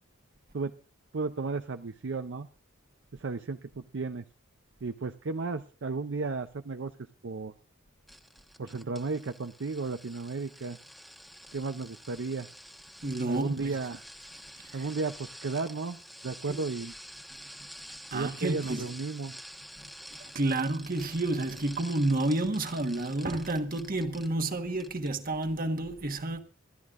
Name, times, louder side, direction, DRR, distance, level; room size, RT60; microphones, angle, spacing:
voice 1, 1.1-2.5 3.1-4.2 4.8-7.0 7.2-7.5 8.6-10.8 11.5-12.5 13.3-14.1 14.7-16.0 16.2-16.9 18.1-19.4, right 4 dB, 60° right, 0.6 m, -34 dB
sound 1, 8.1-24.5 24.8-25.1 25.4-25.5, equal, ahead, 1.1 m, -48 dB
voice 2, 13.0-13.7 14.6-14.8 18.1-18.9 20.1-26.4, right 2 dB, 45° right, 1.4 m, -30 dB
26.5 x 11.5 x 2.5 m
head